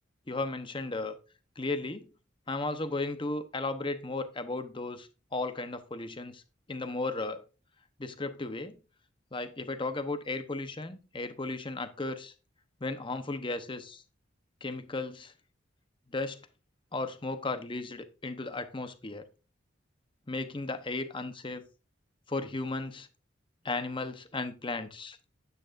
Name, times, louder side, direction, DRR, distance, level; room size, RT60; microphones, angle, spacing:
voice 1, 0.3-1.2 1.6-2.1 2.5-6.4 6.7-7.4 8.0-8.8 9.3-12.3 12.8-14.0 14.6-15.3 16.1-16.4 16.9-19.3 20.3-21.6 22.3-23.1 23.6-25.2, left 2 dB, 25° left, 0.9 m, -35 dB
10.0 x 9.4 x 2.6 m
head